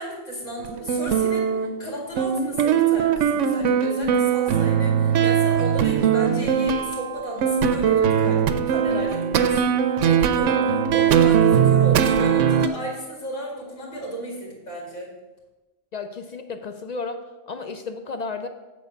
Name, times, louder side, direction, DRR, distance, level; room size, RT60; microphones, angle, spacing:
voice 1, 0.0-9.8 10.0-15.1, right 1 dB, 90° left, -3 dB, 2.7 m, -34 dB
sound 1, 0.6-12.7, right 8 dB, 80° right, 0.9 m, -20 dB
voice 2, 15.9-18.5, left 4 dB, 65° left, 8 dB, 0.4 m, -33 dB
8.4 x 4.4 x 6.8 m, 1.1 s
omnidirectional pair, 1.3 m